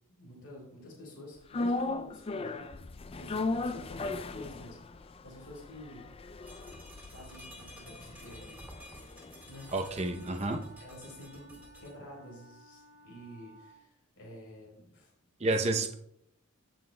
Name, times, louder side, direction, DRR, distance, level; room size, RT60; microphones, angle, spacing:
voice 1, 0.2-2.7 3.2-6.1 7.0-8.6 9.5-9.7 10.8-15.1 15.4-16.0, left 1 dB, 90° left, -3 dB, 3.9 m, -49 dB
sound 1, 1.5-9.8 10.1-10.2, left 3 dB, 25° left, 0.3 m, -37 dB
sound 2, 6.4-11.9, equal, 10° right, 2.0 m, -51 dB
Wind instrument woodwind instrument, 9.4-13.8, right 1 dB, 60° left, 3.7 m, -57 dB
voice 2, 9.7-10.6 15.4-15.9, right 2 dB, 30° right, 4 dB, 0.7 m, -30 dB
16.5 x 6.2 x 2.2 m, 0.74 s
head